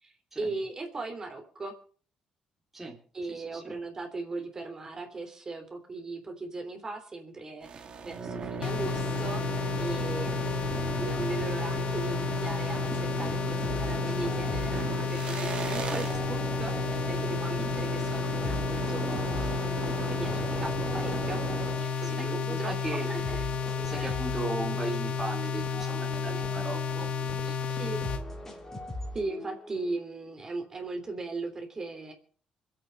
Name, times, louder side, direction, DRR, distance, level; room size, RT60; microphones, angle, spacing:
voice 1, 0.0-1.7 3.1-19.6 19.8-23.5 24.0-24.2 27.8-28.0 29.1-32.1, right 3 dB, 25° right, 4 dB, 3.4 m, -38 dB
voice 2, 3.3-3.8 17.6-17.8 22.0-23.1 23.8-27.9, right 2 dB, 10° right, -3 dB, 3.1 m, -37 dB
sound 1, 7.6-22.2, right 5 dB, 45° right, 2.2 m, -36 dB
sound 2, 8.6-28.2, left 6 dB, 60° left, 1.3 m, -32 dB
sound 3, 13.6-15.6 16.0-17.8 18.4-20.4 20.8-22.6 23.2-25.4 25.6-27.4 28.0-30.0, left 1 dB, 20° left, 3.7 m, -42 dB
25.5 x 8.6 x 5.4 m, 0.44 s
cardioid pair, 125°, 2 cm